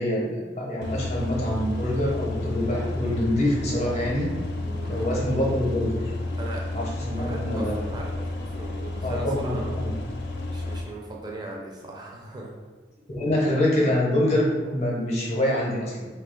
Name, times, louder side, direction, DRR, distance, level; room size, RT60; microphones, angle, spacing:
voice 1, 0.0-4.5 4.9-6.1 6.7-7.7 9.0-9.9 13.1-16.1, left 1 dB, 40° left, -3 dB, 0.7 m, -25 dB
sound 1, 0.8-10.8, left 2 dB, 65° left, 0.3 m, -31 dB
voice 2, 4.6-5.1 6.3-6.6 7.2-9.8 10.5-12.5, right 2 dB, 25° right, -2 dB, 0.5 m, -38 dB
2.7 x 2.3 x 3.7 m, 1.3 s
head